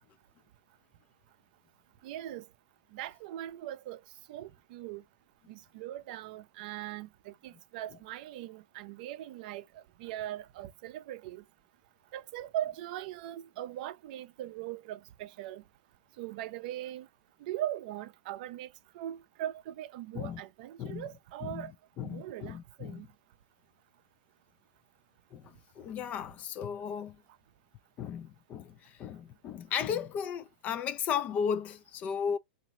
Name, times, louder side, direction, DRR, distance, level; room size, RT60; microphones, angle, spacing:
voice 1, 2.0-2.5 2.9-4.0 4.3-5.0 5.5-11.4 12.1-15.6 16.2-17.1 17.4-18.7 18.9-21.7 22.0-23.1, right 12 dB, 55° right, 0.5 m, -40 dB
voice 2, 22.0-23.0 25.3-27.2 28.0-32.4, left 7 dB, 30° left, 0.3 m, -35 dB
3.1 x 2.5 x 2.9 m
hypercardioid pair, 140°, 5 cm